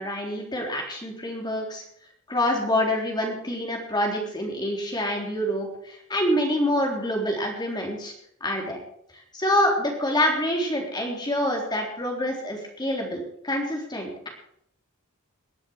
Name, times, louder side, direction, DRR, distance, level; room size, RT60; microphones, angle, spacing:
voice 1, 0.0-1.8 2.3-8.1 8.4-8.8 9.3-14.3, left 1 dB, 20° left, 1 dB, 3.7 m, -26 dB
21.5 x 7.7 x 6.4 m, 0.70 s
head